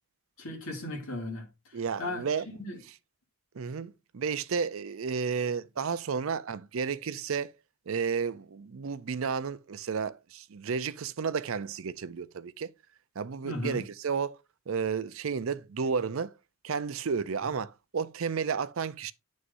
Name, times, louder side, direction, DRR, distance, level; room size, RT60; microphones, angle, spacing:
voice 1, 0.4-2.3 2.5-2.8 13.4-13.8, left 1 dB, 75° left, 2.5 m, -36 dB
voice 2, 1.7-2.5 3.5-7.5 7.9-12.7 13.2-14.4 14.7-16.3 16.6-19.1, right 6 dB, 70° right, 0.5 m, -32 dB
9.5 x 6.4 x 2.6 m
head